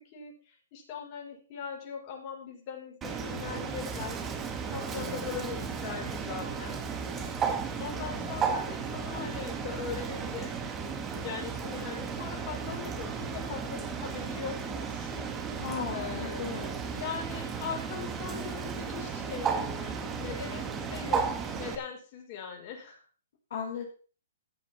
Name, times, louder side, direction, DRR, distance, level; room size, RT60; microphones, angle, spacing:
voice 1, 0.0-4.2 4.7-6.8 7.8-10.5 11.2-15.1 15.9-23.0, left 7 dB, 35° left, 0 dB, 5.4 m, -40 dB
Bird, 3.0-21.8, right 6 dB, 20° right, 2.1 m, -34 dB
voice 2, 4.9-5.3 8.1-8.6 15.6-16.8 23.5-23.9, left 6 dB, 60° left, -1 dB, 4.6 m, -38 dB
14.5 x 7.0 x 5.9 m, 0.38 s
hypercardioid pair, 140°, 0 cm